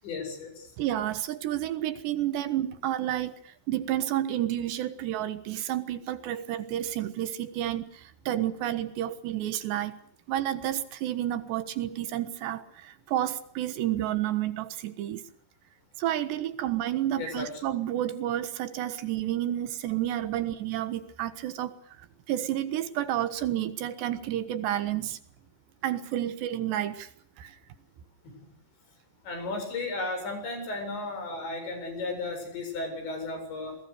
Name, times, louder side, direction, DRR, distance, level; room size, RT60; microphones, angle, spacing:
voice 1, 0.0-0.7 17.2-17.5 28.2-28.4 29.2-33.8, left 3 dB, 70° left, 6 dB, 9.6 m, -34 dB
voice 2, 0.8-10.0 10.3-15.2 16.0-25.2 25.8-27.1 27.4-27.6, right 12 dB, 75° right, 11 dB, 3.5 m, -30 dB
28.0 x 21.0 x 6.7 m, 0.62 s
omnidirectional pair, 5.2 m